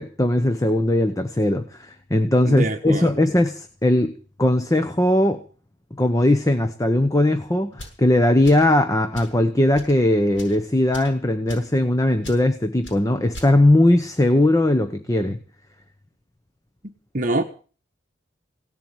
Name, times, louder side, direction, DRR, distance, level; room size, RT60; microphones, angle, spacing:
voice 1, 0.0-5.4 5.9-15.4, left 1 dB, 20° left, 1.0 m, -19 dB
voice 2, 2.5-3.3 17.1-17.4, right 2 dB, 45° right, 1.4 m, -25 dB
sound 1, 7.7-8.0 8.4-8.7 9.1-9.4 9.7-10.0 10.3-10.6 10.9-11.2 11.5-11.7 12.2-12.4 12.8-13.0 13.3-13.5, left 1 dB, 70° left, 7.2 m, -39 dB
18.0 x 7.7 x 9.2 m
head